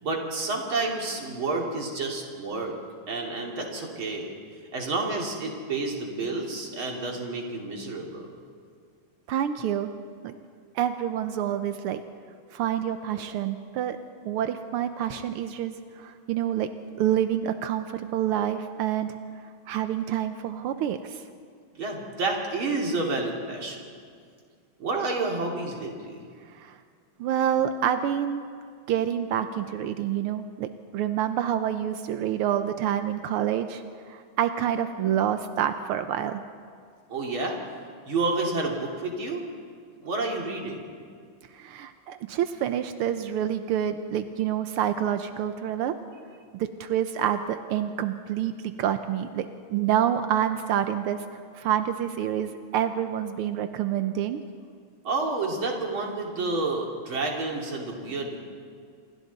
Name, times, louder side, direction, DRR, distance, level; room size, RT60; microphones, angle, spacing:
voice 1, 0.0-2.8 3.1-4.3 4.7-8.3 21.8-23.9 24.8-26.2 37.1-37.6 38.1-39.4 40.0-40.8 55.0-58.4, right 3 dB, 65° right, 0 dB, 3.5 m, -29 dB
voice 2, 9.3-9.9 10.2-10.4 10.8-12.0 12.5-14.0 14.3-16.7 17.0-19.2 19.7-21.2 26.5-26.8 27.2-28.5 28.9-33.8 34.1-36.4 41.5-45.9 46.5-54.4, right 10 dB, 85° right, 9 dB, 1.7 m, -27 dB
27.5 x 23.5 x 4.1 m, 2.1 s
omnidirectional pair, 2.4 m